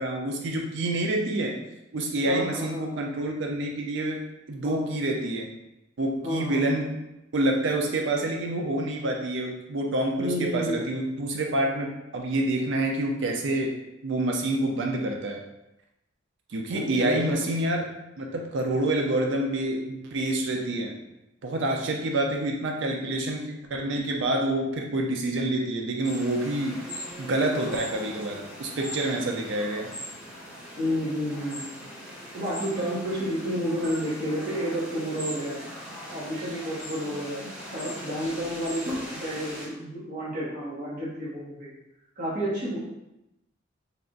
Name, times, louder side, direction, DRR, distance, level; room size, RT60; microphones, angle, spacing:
voice 1, 0.0-1.6 1.9-4.2 4.5-5.5 6.0-7.0 7.3-13.7 14.0-15.4 16.5-17.9 18.2-20.9 21.4-26.8 27.2-29.9, right 1 dB, 60° right, 1 dB, 0.5 m, -27 dB
voice 2, 2.3-2.9 4.6-4.9 6.2-6.8 10.2-10.8 16.7-17.4 30.8-31.6 32.3-35.6 36.1-37.4 37.7-41.7 42.2-42.8, equal, 40° right, -9 dB, 1.2 m, -30 dB
sound 1, 26.0-39.7, equal, 5° right, 1.4 m, -40 dB
3.4 x 2.4 x 3.8 m, 0.90 s
head